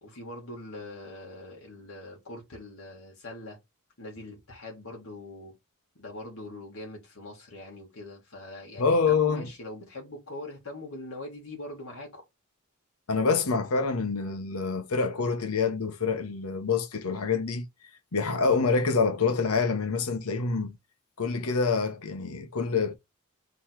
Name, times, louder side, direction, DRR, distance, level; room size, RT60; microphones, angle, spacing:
voice 1, 0.0-3.6 4.0-5.5 6.0-12.2, left 1 dB, 70° left, 1.9 m, -42 dB
voice 2, 8.8-9.5 13.1-17.7 18.1-20.8 21.2-23.0, left 4 dB, 85° left, 0.9 m, -26 dB
3.9 x 3.1 x 4.5 m
head